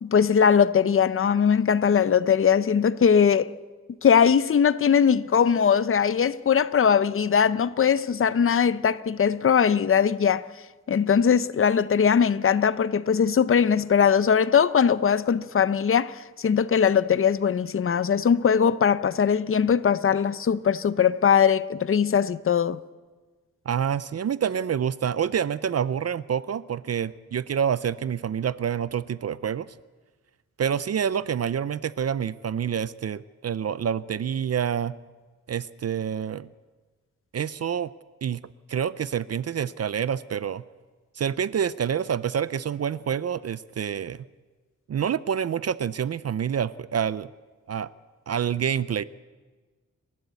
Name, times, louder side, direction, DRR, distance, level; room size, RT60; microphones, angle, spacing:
voice 1, 0.0-3.5 4.0-10.4 10.9-22.8, left 7 dB, 45° left, 0.7 m, -20 dB
voice 2, 23.7-29.7 30.6-34.9 35.5-36.5 37.3-37.9 38.2-38.4 38.7-40.6 41.2-44.2 44.9-47.3 47.7-47.9 48.3-49.0, right 8 dB, 55° right, 0.5 m, -27 dB
29.5 x 12.0 x 8.2 m
wide cardioid pair, 110°, 30 cm